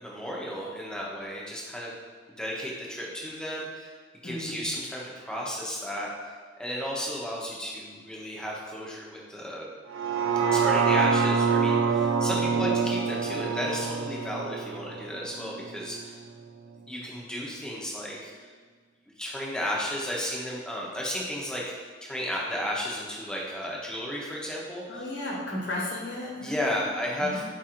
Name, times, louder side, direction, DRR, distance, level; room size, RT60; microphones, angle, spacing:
voice 1, 0.0-1.9 2.4-3.9 4.2-6.1 6.6-9.7 10.5-16.2 16.9-18.3 19.2-21.6 22.0-25.0 26.4-27.4, equal, 5° left, -4 dB, 0.6 m, -33 dB
voice 2, 4.2-4.6 12.2-12.7 24.9-26.6 26.9-27.4, left 1 dB, 60° left, -4 dB, 1.0 m, -35 dB
sound 1, 9.9-16.1 16.5-16.6, right 5 dB, 80° right, 0.4 m, -26 dB
4.5 x 2.5 x 4.3 m, 1.5 s
head